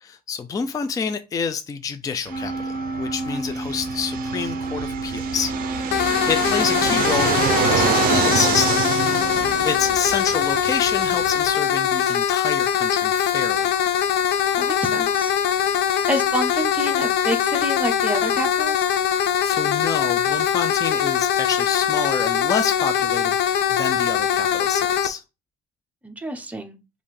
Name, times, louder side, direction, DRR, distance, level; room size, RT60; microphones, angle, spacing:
voice 1, 0.0-9.3 9.6-13.7 19.4-25.2, left 6 dB, 20° left, 0.4 m, -28 dB
Wind instrument woodwind instrument, 2.3-9.9, right 2 dB, 45° left, 1.4 m, -31 dB
Fixed-wing aircraft airplane, 2.3-11.5, right 11 dB, 60° right, 0.5 m, -27 dB
sound 1, 5.9-25.1, left 9 dB, 80° left, 0.5 m, -22 dB
voice 2, 14.6-15.3 16.1-18.8 26.0-26.8, right 1 dB, 10° right, 0.7 m, -28 dB
5.3 x 2.5 x 3.2 m
cardioid pair, 110°, 17 cm